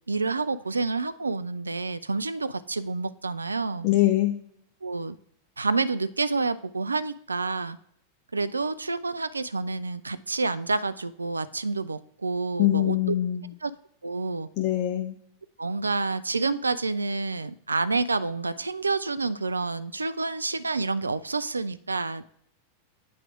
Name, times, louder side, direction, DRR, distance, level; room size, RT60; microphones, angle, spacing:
voice 1, 0.1-3.9 4.8-5.2 5.6-7.8 8.3-13.2 13.6-13.7 14.0-14.5 15.6-22.3, right 3 dB, 80° right, 14 dB, 0.4 m, -28 dB
voice 2, 3.8-4.3 12.6-13.5 14.6-15.2, left 14 dB, 40° left, 5 dB, 0.6 m, -23 dB
8.5 x 4.8 x 3.6 m, 0.70 s
figure-of-eight pair, 90°, 0 cm